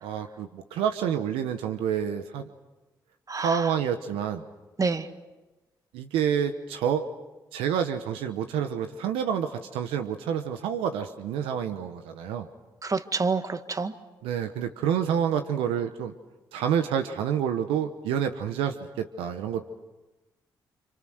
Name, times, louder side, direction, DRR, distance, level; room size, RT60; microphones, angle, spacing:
voice 1, 0.0-2.5 3.3-4.4 5.9-7.0 7.5-12.5 14.2-16.1 16.5-19.7, right 8 dB, 85° right, 8 dB, 1.1 m, -28 dB
voice 2, 3.3-3.7 4.8-5.1 12.8-13.9, right 4 dB, 40° right, 9 dB, 1.9 m, -28 dB
29.5 x 27.0 x 6.5 m, 1.1 s
supercardioid pair, 50°, 9 cm